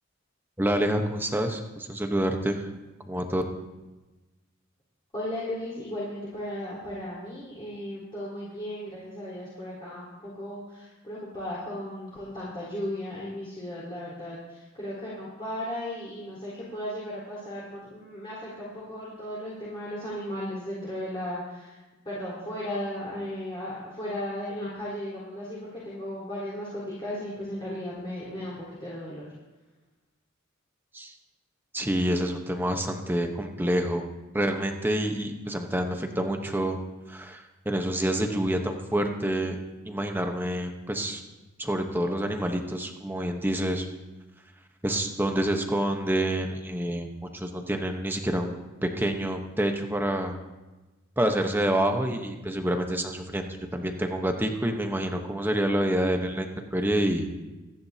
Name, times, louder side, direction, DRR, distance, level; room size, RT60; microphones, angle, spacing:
voice 1, 0.6-2.7 3.1-3.4 30.9-31.1 31.7-34.0 34.3-36.8 37.1-39.6 39.8-41.2 41.6-43.9 44.8-50.4 51.2-57.3, right 1 dB, 10° right, 4 dB, 1.1 m, -27 dB
voice 2, 5.1-21.8 22.0-29.2, left 1 dB, 25° left, -8 dB, 4.3 m, -36 dB
26.5 x 10.5 x 2.9 m, 1.1 s
head